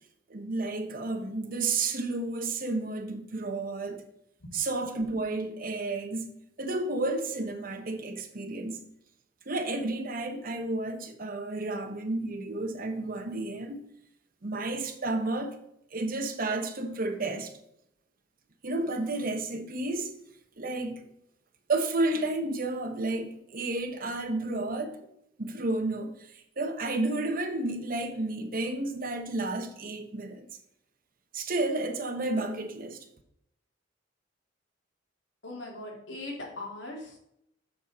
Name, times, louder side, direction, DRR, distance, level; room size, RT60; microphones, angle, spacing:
voice 1, 0.3-4.0 4.5-6.3 6.6-8.8 9.5-13.8 14.4-15.5 15.9-17.5 18.6-20.1 20.6-21.0 21.7-25.0 25.4-26.1 26.6-30.5 31.3-33.0, right 2 dB, 50° right, 1.0 m, -31 dB
voice 2, 35.4-37.2, left 2 dB, 85° left, 2.6 m, -40 dB
6.9 x 6.3 x 4.2 m
head